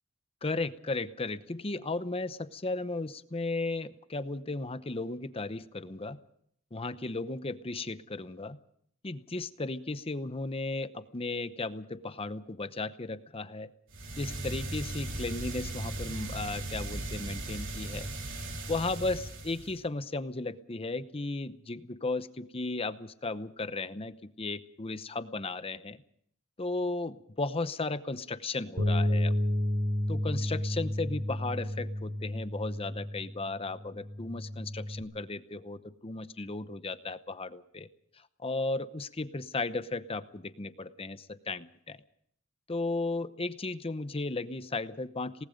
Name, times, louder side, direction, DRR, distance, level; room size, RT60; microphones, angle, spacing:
voice 1, 0.4-6.2 6.7-8.6 9.0-13.7 14.2-18.1 18.7-26.0 26.6-29.4 30.1-37.9 38.4-42.0 42.7-45.4, left 3 dB, 25° left, 12 dB, 0.8 m, -35 dB
sound 1, 13.9-19.8, right 2 dB, 60° right, 3.6 m, -37 dB
Bass guitar, 28.8-35.0, left 1 dB, 80° right, 3.3 m, -31 dB
27.5 x 19.0 x 5.2 m, 0.68 s
head